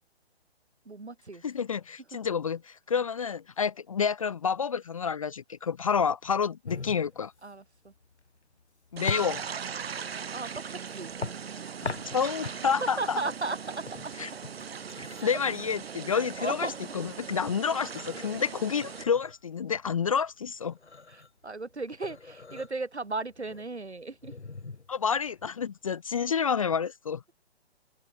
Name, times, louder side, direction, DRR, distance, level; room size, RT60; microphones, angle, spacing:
voice 1, 0.8-1.5 2.9-3.0 7.4-7.9 10.3-11.1 12.8-14.1 15.2-15.4 16.1-16.8 21.1-24.3, right 3 dB, 80° right, 4.5 m, -36 dB
voice 2, 1.4-7.3 8.9-9.4 11.8-13.2 14.2-14.3 15.0-16.7 16.9-20.8 24.9-27.2, left 6 dB, 35° left, 0.4 m, -29 dB
sound 1, 6.6-26.2, left 4 dB, 90° left, 1.3 m, -42 dB
sound 2, 9.0-19.0, right 7 dB, 65° right, 1.3 m, -39 dB
open air
figure-of-eight pair, 135°, 33 cm